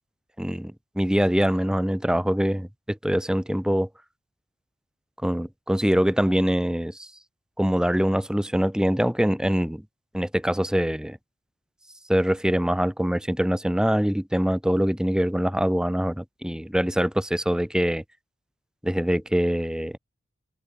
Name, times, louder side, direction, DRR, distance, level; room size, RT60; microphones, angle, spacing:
voice 1, 0.4-3.9 5.2-7.1 7.6-9.8 10.1-11.2 12.1-18.0 18.8-20.0, equal, 5° right, 0.8 m, -24 dB
head